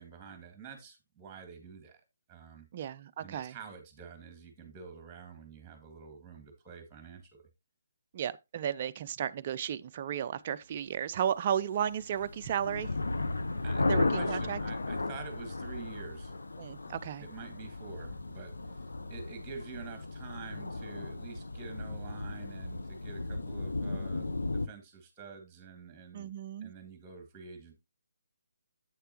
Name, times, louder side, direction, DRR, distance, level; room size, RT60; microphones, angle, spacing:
voice 1, 0.0-2.0 2.3-2.7 3.2-7.5 13.6-16.3 17.2-18.8 19.1-26.3 26.6-27.7, right 5 dB, 15° right, 1.9 m, -48 dB
voice 2, 2.7-3.6 8.1-12.9 13.9-14.6 16.6-17.2 26.1-26.7, right 9 dB, 35° right, 0.4 m, -34 dB
sound 1, 11.9-24.7, left 2 dB, 70° left, 0.8 m, -35 dB
8.0 x 6.7 x 2.9 m
figure-of-eight pair, 145°, 0 cm